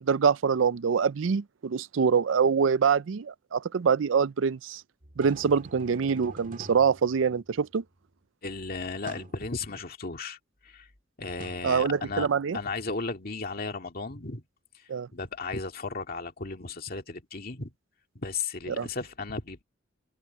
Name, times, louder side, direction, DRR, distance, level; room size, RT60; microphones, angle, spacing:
voice 1, 0.0-4.8 5.2-7.8 11.6-12.6 14.9-15.1 18.7-18.9, right 6 dB, 85° right, 0.5 m, -25 dB
sound 1, 5.0-7.8 9.1-9.5 11.4-12.5, right 2 dB, 45° right, 1.8 m, -47 dB
voice 2, 8.4-10.4 10.6-10.9 11.2-12.3 12.5-14.4 15.1-17.7 18.2-19.6, left 4 dB, 50° left, 2.1 m, -35 dB
head